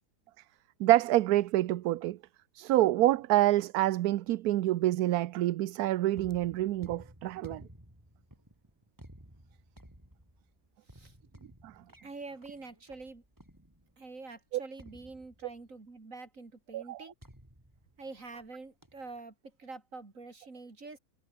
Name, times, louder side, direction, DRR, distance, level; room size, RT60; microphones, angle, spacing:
voice 1, 0.8-2.2 2.5-7.6 11.6-11.7 16.7-17.0, right 15 dB, 75° right, 1.1 m, -27 dB
sound 1, 6.1-14.1 14.8-15.8 17.2-18.5 18.8-19.2, equal, 10° right, 7.0 m, -55 dB
voice 2, 12.0-13.2 14.0-17.1 18.0-21.0, right 3 dB, 55° right, 3.8 m, -46 dB
omnidirectional pair, 1.7 m